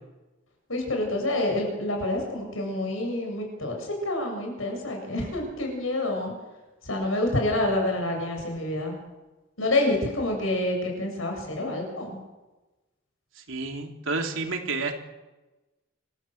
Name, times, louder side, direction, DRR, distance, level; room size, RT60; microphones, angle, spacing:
voice 1, 0.7-6.3 6.8-8.9 9.6-12.2, left 1 dB, 90° left, 2 dB, 7.6 m, -27 dB
voice 2, 13.5-14.9, right 3 dB, 75° right, 3 dB, 3.1 m, -30 dB
26.5 x 15.0 x 7.9 m, 1.1 s
head